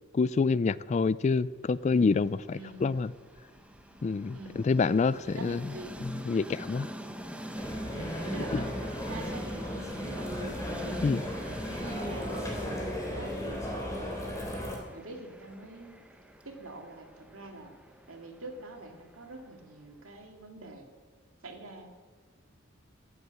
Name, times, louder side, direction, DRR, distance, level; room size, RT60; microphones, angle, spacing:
voice 1, 0.1-3.1 4.0-4.4 4.6-5.6 6.0-6.9 8.5-8.6 11.0-11.2, left 4 dB, 35° left, 0.3 m, -27 dB
Train, 1.8-19.9, equal, 5° right, 1.0 m, -44 dB
voice 2, 2.5-2.9 4.3-4.6 5.3-5.9 7.9-10.6 11.7-12.3 13.1-13.6 13.9-16.0 16.4-17.7 18.1-20.9 21.4-21.9, right 2 dB, 85° right, 2.3 m, -45 dB
sound 1, 7.5-14.8, equal, 15° left, 3.1 m, -36 dB
14.0 x 8.2 x 7.5 m
head